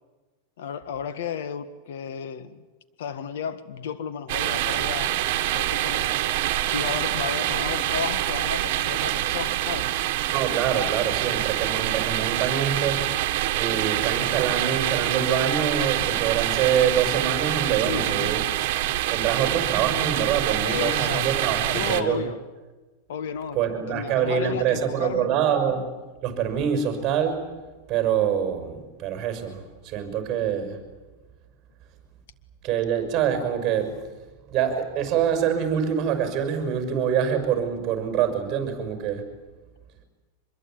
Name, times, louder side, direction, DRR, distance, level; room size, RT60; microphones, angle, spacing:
voice 1, 0.6-2.7 3.0-5.1 5.5-6.2 6.7-9.9 10.8-10.9 17.8-18.3 20.6-21.4 21.7-22.4 23.1-23.6 23.9-25.3, left 8 dB, 75° left, 13 dB, 1.6 m, -33 dB
sound 1, 4.3-22.0, right 14 dB, 50° right, 1.8 m, -26 dB
voice 2, 10.3-13.1 13.5-18.4 19.1-22.2 23.5-25.9 26.2-27.5 27.9-30.8 32.6-34.0 34.5-39.3, right 8 dB, 25° right, 6 dB, 6.1 m, -25 dB
25.5 x 22.0 x 9.1 m, 1.2 s
supercardioid pair, 160°, 0 cm